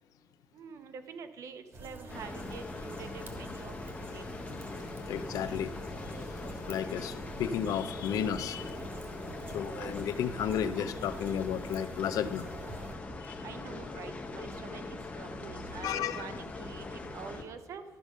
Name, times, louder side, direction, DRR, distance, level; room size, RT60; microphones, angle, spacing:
voice 1, 0.5-4.2 13.4-17.8, right 6 dB, 60° right, 10 dB, 0.8 m, -46 dB
sound 1, 1.7-13.0, right 2 dB, 40° right, 1.4 m, -46 dB
sound 2, 2.1-17.4, left 3 dB, 20° left, 0.8 m, -42 dB
voice 2, 5.1-5.8 6.7-8.6 9.5-12.5 13.2-13.3 15.8-16.3, left 8 dB, 80° left, 12 dB, 0.5 m, -33 dB
12.5 x 5.2 x 6.3 m, 1.3 s
cardioid pair, 160°, 6 cm